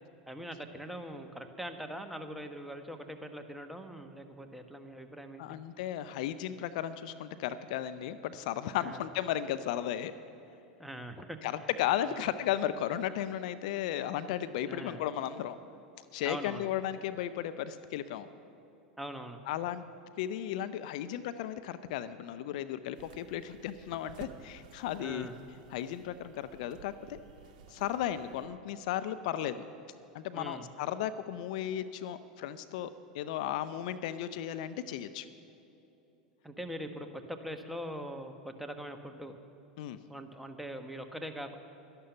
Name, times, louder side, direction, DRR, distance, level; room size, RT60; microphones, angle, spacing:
voice 1, 0.3-5.6 8.8-9.0 10.8-11.7 12.0-12.2 14.7-15.0 16.2-16.7 19.0-19.4 24.9-25.4 30.3-30.7 36.4-39.4 40.1-41.6, equal, 5° right, 6 dB, 1.2 m, -42 dB
voice 2, 5.4-10.1 11.4-15.6 16.1-18.3 19.5-19.8 20.2-25.3 25.7-27.2 27.7-29.6 30.1-35.3 39.8-40.0, left 11 dB, 65° left, 13 dB, 0.5 m, -35 dB
sound 1, 22.9-28.5, right 8 dB, 65° right, 0.9 m, -54 dB
11.5 x 11.5 x 6.8 m, 2.9 s
hypercardioid pair, 90°, 4 cm